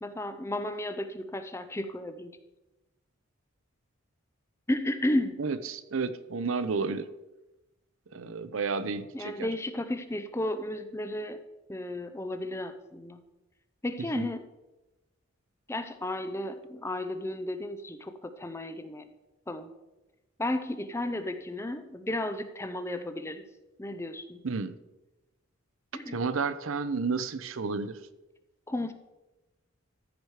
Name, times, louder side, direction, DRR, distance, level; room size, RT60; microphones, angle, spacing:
voice 1, 0.0-2.4 4.7-5.4 9.1-11.4 11.7-13.2 13.8-14.5 15.7-19.1 19.5-19.7 20.4-23.4 23.8-24.4 25.9-26.2 28.7-28.9, left 1 dB, 10° left, 9 dB, 0.5 m, -33 dB
voice 2, 5.4-7.1 8.1-9.5 14.2-14.3 24.4-24.8 26.1-28.0, right 4 dB, 70° right, 13 dB, 0.6 m, -31 dB
14.0 x 4.9 x 4.7 m, 1.0 s
head